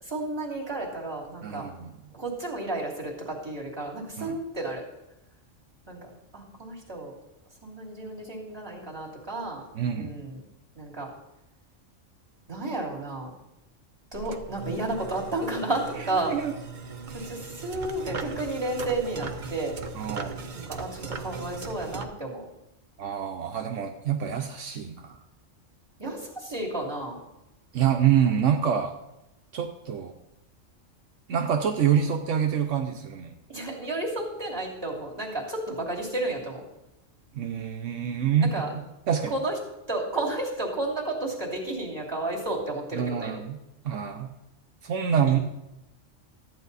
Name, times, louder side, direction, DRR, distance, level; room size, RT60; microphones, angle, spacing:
voice 1, 0.0-1.7 2.1-4.8 5.9-7.1 7.6-9.6 9.9-10.4 10.7-11.1 12.5-13.3 14.1-16.3 17.1-19.8 20.5-22.4 26.0-27.2 33.5-36.6 38.5-38.7 39.3-39.5 39.9-43.3 45.3-45.4, right 2 dB, 20° right, -4 dB, 2.8 m, -32 dB
voice 2, 1.4-1.9 4.2-4.4 9.7-10.1 16.3-16.5 20.0-20.4 23.0-25.2 27.7-29.0 29.5-30.1 31.3-33.3 37.3-39.3 42.9-43.6 43.8-44.3 44.8-45.4, right 8 dB, 75° right, 5 dB, 1.1 m, -26 dB
sound 1, 14.1-22.1, right 4 dB, 45° right, 0.8 m, -38 dB
14.0 x 9.0 x 4.0 m, 0.91 s
omnidirectional pair, 1.3 m